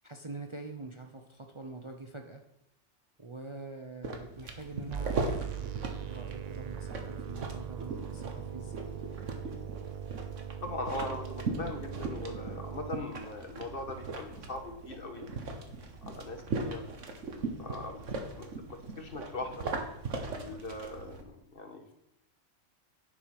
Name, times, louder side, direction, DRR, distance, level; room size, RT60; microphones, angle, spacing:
voice 1, 0.0-2.4 3.2-5.3 5.5-8.9, right 3 dB, 30° right, 5 dB, 0.7 m, -45 dB
sound 1, 4.0-21.2, right 3 dB, 75° right, 1.7 m, -39 dB
sound 2, 4.9-12.9, right 9 dB, 55° right, 0.4 m, -40 dB
voice 2, 10.6-15.3 16.0-16.8 17.6-18.0 18.4-19.6 20.3-21.9, left 2 dB, 45° left, 5 dB, 1.6 m, -40 dB
10.0 x 7.8 x 6.0 m, 0.79 s
omnidirectional pair, 1.3 m